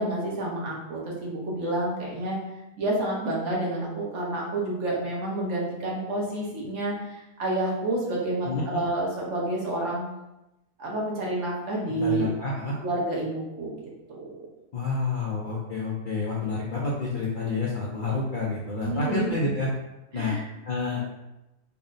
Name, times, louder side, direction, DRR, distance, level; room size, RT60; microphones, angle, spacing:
voice 1, 0.0-2.4 2.8-10.0 10.8-12.3 12.8-13.7 14.1-14.2 18.8-19.3 20.1-20.5, right 2 dB, 65° right, -3 dB, 1.2 m, -29 dB
voice 2, 8.4-8.8 12.0-12.8 14.7-19.7 20.1-20.3 20.6-21.0, left 3 dB, 60° left, -5 dB, 0.5 m, -29 dB
3.4 x 2.1 x 3.8 m, 0.96 s
omnidirectional pair, 1.4 m